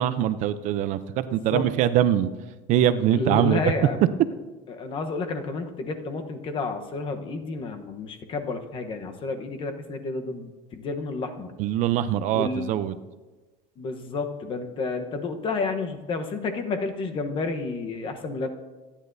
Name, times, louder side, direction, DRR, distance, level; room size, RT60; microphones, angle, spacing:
voice 1, 0.0-2.3 2.7-3.6 11.6-13.0, right 11 dB, 50° right, 12 dB, 0.5 m, -23 dB
voice 2, 1.3-1.7 3.1-4.1 4.7-11.5 12.3-12.9 13.8-18.5, left 3 dB, 30° left, 6 dB, 1.0 m, -31 dB
25.5 x 10.0 x 2.7 m, 1.2 s
cardioid pair, 170°, 17 cm